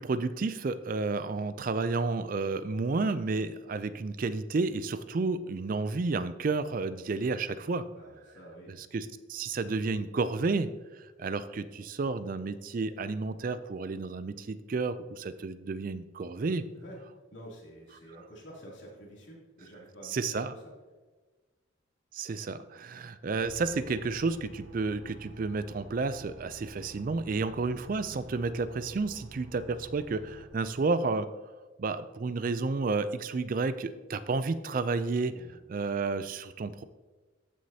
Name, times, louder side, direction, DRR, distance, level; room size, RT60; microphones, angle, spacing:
voice 1, 0.0-7.8 8.7-10.7 10.9-16.6 20.1-20.5 22.1-31.3 31.8-35.3 35.7-36.8, right 3 dB, 45° right, 13 dB, 0.4 m, -31 dB
voice 2, 7.9-8.8 16.7-17.0 17.3-20.7 35.3-35.6, equal, 65° left, -4 dB, 2.9 m, -49 dB
sound 1, 23.4-30.5, right 1 dB, 70° right, 1.6 m, -50 dB
14.5 x 6.3 x 2.8 m, 1.2 s
head